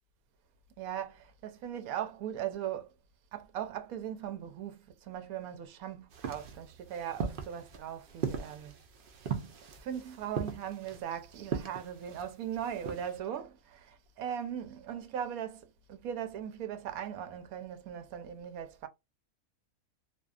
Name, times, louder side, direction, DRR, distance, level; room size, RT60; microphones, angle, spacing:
voice 1, 0.8-2.9 3.3-8.8 9.7-18.9, right 9 dB, 80° right, 1.1 m, -39 dB
sound 1, 6.1-13.2, right 6 dB, 60° right, 0.5 m, -39 dB
2.7 x 2.3 x 2.3 m
omnidirectional pair, 1.5 m